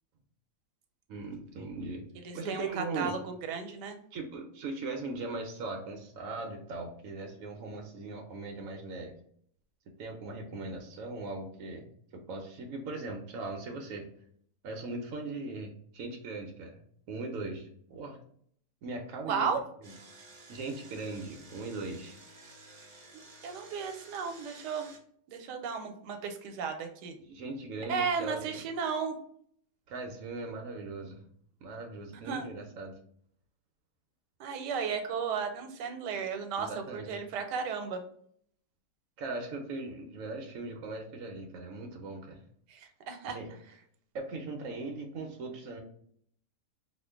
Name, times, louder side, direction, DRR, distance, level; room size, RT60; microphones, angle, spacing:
voice 1, 1.1-2.1 2.3-3.1 4.1-9.1 10.0-14.1 14.6-18.2 18.8-19.5 19.8-19.9 20.5-22.2 27.2-28.6 29.9-31.2 31.6-32.9 36.6-37.2 39.2-42.4 43.3-43.5 44.1-45.8, right 3 dB, 65° right, 2 dB, 0.9 m, -39 dB
voice 2, 2.2-4.0 19.3-19.6 23.4-24.9 25.3-27.1 27.9-29.2 32.2-32.5 34.4-38.0 42.7-43.4, right 6 dB, 85° right, 6 dB, 1.2 m, -34 dB
Engine, 19.8-25.0, right 2 dB, 45° right, 0.6 m, -53 dB
2.9 x 2.4 x 3.4 m, 0.63 s
omnidirectional pair, 1.8 m